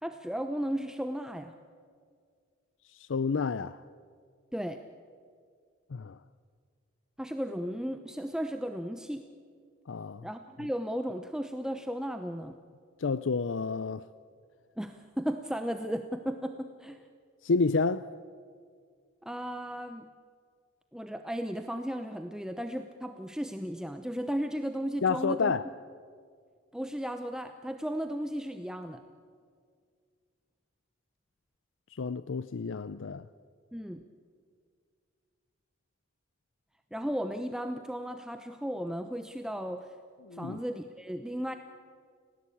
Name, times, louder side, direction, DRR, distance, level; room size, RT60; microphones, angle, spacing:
voice 1, 0.0-1.5 4.5-4.8 7.2-9.2 10.2-12.6 14.8-17.0 19.2-20.1 20.9-25.5 26.7-29.0 33.7-34.0 36.9-39.9 40.3-41.5, equal, 5° right, 0.8 m, -35 dB
voice 2, 2.9-3.8 5.9-6.2 9.9-10.3 13.0-14.1 17.4-18.1 25.0-25.7 31.9-33.3 40.2-40.6, left 4 dB, 80° left, 0.5 m, -30 dB
30.0 x 17.5 x 8.5 m
head